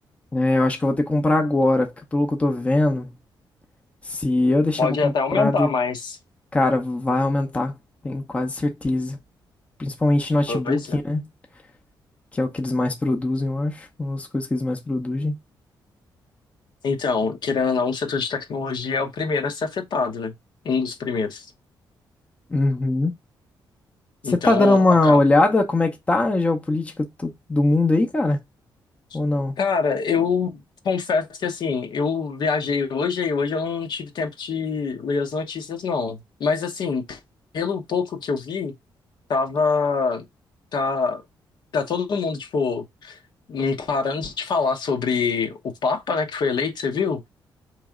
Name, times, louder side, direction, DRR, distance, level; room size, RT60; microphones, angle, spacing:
voice 1, 0.3-3.1 4.1-5.7 6.5-7.7 8.0-9.2 9.8-11.2 12.3-15.3 22.5-23.1 24.3-28.4 29.1-29.5, left 2 dB, 15° left, 0.7 m, -21 dB
voice 2, 4.8-6.2 10.5-11.0 16.8-20.3 20.6-21.5 24.2-25.2 29.6-37.2 37.5-38.7 39.3-40.2 40.7-41.2 41.7-43.2 43.5-47.2, left 5 dB, 60° left, 1.0 m, -25 dB
4.0 x 3.2 x 3.6 m
cardioid pair, 135°, 8 cm